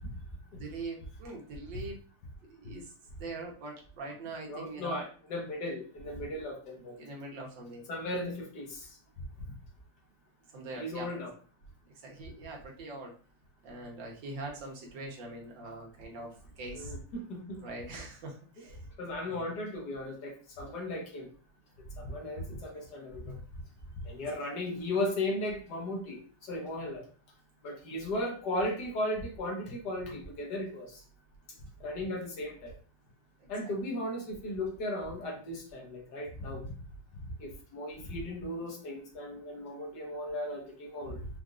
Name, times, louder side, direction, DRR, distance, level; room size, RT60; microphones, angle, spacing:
voice 1, 0.6-2.0 2.5-2.9 3.2-5.0 6.3-6.4 7.0-7.8 10.5-11.1 12.0-13.1 13.6-16.9 17.6-18.8 19.3-19.5 33.6-33.7, right 2 dB, 80° right, 0 dB, 1.8 m, -43 dB
voice 2, 4.5-7.0 7.9-8.9 10.7-11.3 16.7-17.6 19.0-21.3 22.0-23.4 24.1-27.0 27.6-30.9 31.8-32.7 33.5-36.7 37.4-41.3, left 1 dB, 65° left, 1 dB, 1.8 m, -36 dB
5.2 x 3.7 x 2.5 m, 0.40 s
omnidirectional pair, 2.0 m